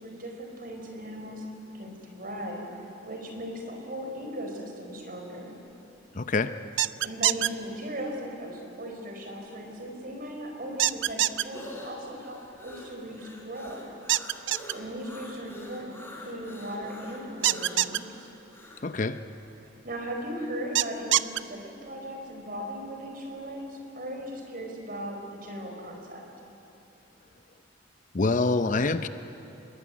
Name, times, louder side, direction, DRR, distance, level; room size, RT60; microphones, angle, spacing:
voice 1, 0.0-1.4 1.7-5.6 7.0-13.9 14.7-18.3 19.6-26.3, equal, 45° right, 2 dB, 4.3 m, -38 dB
voice 2, 6.1-6.5 18.8-19.2 28.1-29.1, left 3 dB, 40° left, 11 dB, 0.6 m, -25 dB
sound 1, 6.8-7.5 10.8-11.4 14.1-14.7 17.4-18.0 20.8-21.4, right 13 dB, 65° right, 0.5 m, -24 dB
sound 2, 10.6-18.9, left 1 dB, 10° left, 3.7 m, -45 dB
25.0 x 21.5 x 9.5 m, 2.9 s
head